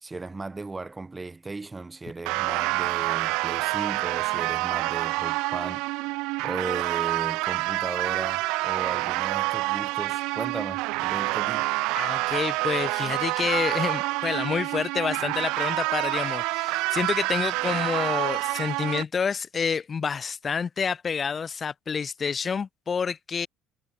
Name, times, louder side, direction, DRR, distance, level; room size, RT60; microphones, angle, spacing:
voice 1, 0.0-5.9 6.4-11.7, right 3 dB, 20° right, 2.9 m, -36 dB
sound 1, 2.3-19.0, right 23 dB, 80° right, 0.4 m, -27 dB
voice 2, 11.9-23.5, left 6 dB, 40° left, 0.5 m, -28 dB
supercardioid pair, 75°, 0 cm